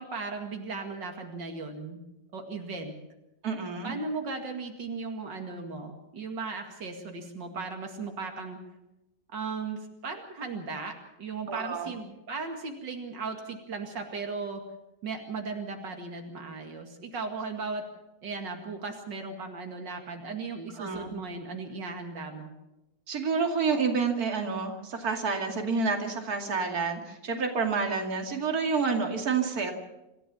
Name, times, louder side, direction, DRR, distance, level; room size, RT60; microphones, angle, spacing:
voice 1, 0.0-2.0 2.3-2.9 3.8-8.6 9.3-14.6 15.0-17.8 18.2-22.5, right 4 dB, 85° right, 4 dB, 2.9 m, -37 dB
voice 2, 3.4-3.9 11.5-12.0 20.8-21.1 23.1-29.7, right 5 dB, 55° right, 3 dB, 3.0 m, -29 dB
26.5 x 15.0 x 7.0 m, 0.93 s
omnidirectional pair, 1.9 m